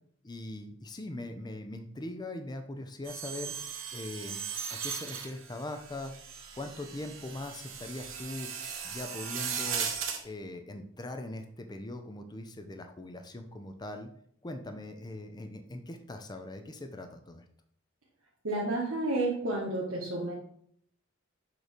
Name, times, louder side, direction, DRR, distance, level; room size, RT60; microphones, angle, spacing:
voice 1, 0.2-3.6 3.9-4.4 4.7-6.1 6.6-8.5 8.8-9.9 10.2-14.1 14.4-17.4, left 1 dB, 20° left, 6 dB, 0.5 m, -41 dB
sound 1, 3.0-10.2, right 7 dB, 70° right, 1.1 m, -38 dB
voice 2, 18.4-20.3, right 2 dB, 85° right, -5 dB, 1.4 m, -31 dB
6.5 x 3.2 x 5.0 m, 0.66 s
head